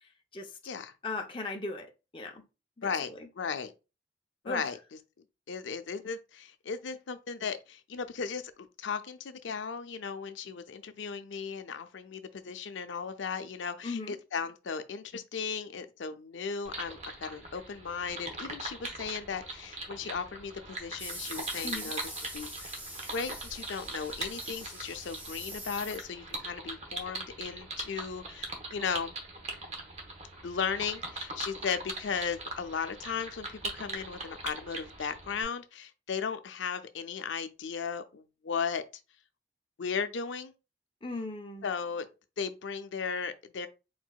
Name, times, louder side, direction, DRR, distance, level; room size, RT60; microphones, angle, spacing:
voice 1, 1.0-2.4 2.8-2.9 4.4-4.7 13.8-14.1 21.6-21.9 41.0-41.6, left 3 dB, 25° left, 0.6 m, -37 dB
voice 2, 3.4-3.7 4.4-4.8 5.5-8.5 8.8-22.7 23.1-29.1 30.4-38.8 39.8-40.5 41.6-42.1 42.4-43.7, left 6 dB, 85° left, 0.5 m, -36 dB
sound 1, 16.6-35.4, right 2 dB, 35° right, 0.9 m, -41 dB
sound 2, 21.0-26.3, right 1 dB, 10° right, 0.8 m, -43 dB
4.5 x 4.0 x 2.3 m
head